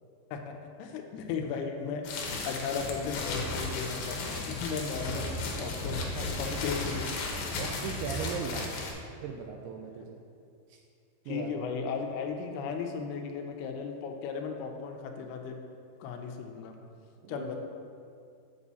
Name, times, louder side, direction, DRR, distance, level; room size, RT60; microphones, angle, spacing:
voice 1, 0.3-6.1 6.4-7.2 9.1-9.2 10.0-10.1 11.3-15.6 16.0-16.7 17.3-17.6, left 5 dB, 90° left, 4 dB, 2.7 m, -36 dB
sound 1, 2.0-8.9, left 3 dB, 70° left, 2.6 m, -35 dB
voice 2, 5.4-6.4 7.5-8.7 9.2-10.2 10.7-10.8 11.3-11.7 17.2-17.5, right 6 dB, 85° right, 2 dB, 1.9 m, -39 dB
7.5 x 7.3 x 4.1 m, 2.4 s
omnidirectional pair, 4.5 m